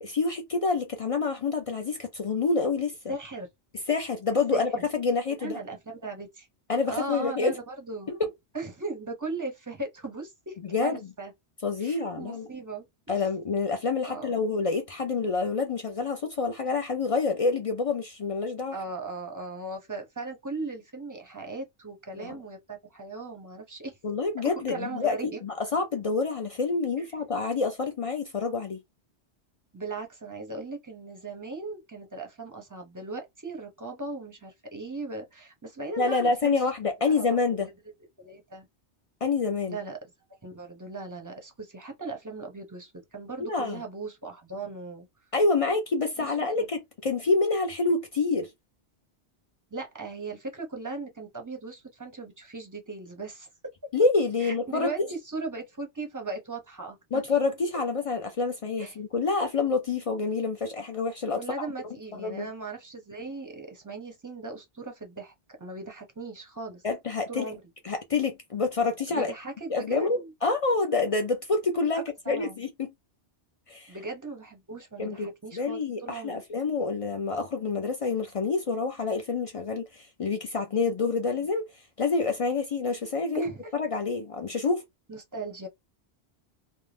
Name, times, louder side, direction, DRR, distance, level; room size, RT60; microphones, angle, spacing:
voice 1, 0.0-3.1 3.9-5.6 6.7-7.5 8.2-8.3 10.7-11.0 11.6-12.5 13.1-18.8 22.2-22.3 24.0-28.8 36.0-37.7 39.2-39.8 43.4-43.8 45.3-48.5 53.9-55.1 57.1-61.7 62.2-62.5 66.8-67.5 67.8-69.3 69.7-72.9 73.7-74.0 75.0-81.6 82.0-84.8, left 4 dB, 60° left, 0.3 m, -27 dB
voice 2, 3.1-3.5 4.5-4.9 5.4-6.5 6.9-8.1 8.5-11.3 11.8-13.3 14.0-14.4 18.7-24.0 24.7-25.4 27.0-27.1 29.7-36.6 37.0-37.7 38.2-38.7 39.7-40.0 40.4-45.1 46.2-46.3 46.6-46.7 49.7-53.5 54.4-57.2 58.8-59.0 61.4-65.3 65.6-66.8 67.3-67.6 69.1-70.3 72.2-72.6 73.9-76.5 83.3-83.7 84.6-84.7 85.1-85.7, right 3 dB, 20° right, 0.6 m, -38 dB
2.5 x 2.2 x 3.2 m
omnidirectional pair, 1.2 m